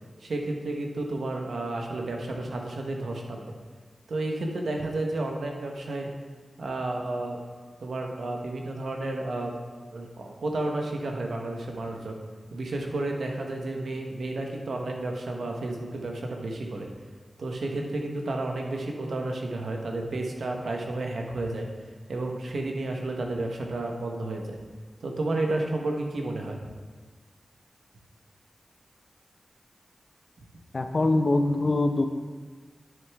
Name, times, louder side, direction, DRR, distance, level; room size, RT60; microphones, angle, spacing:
voice 1, 0.2-3.5 4.1-6.1 6.6-7.4 7.8-9.5 9.9-12.2 12.5-16.9 17.4-21.7 22.1-24.6 25.0-26.7, right 2 dB, 90° right, 1 dB, 1.1 m, -31 dB
voice 2, 30.7-32.1, left 2 dB, 55° left, 7 dB, 0.6 m, -23 dB
10.5 x 6.8 x 3.5 m, 1.4 s
wide cardioid pair, 60°, 0 cm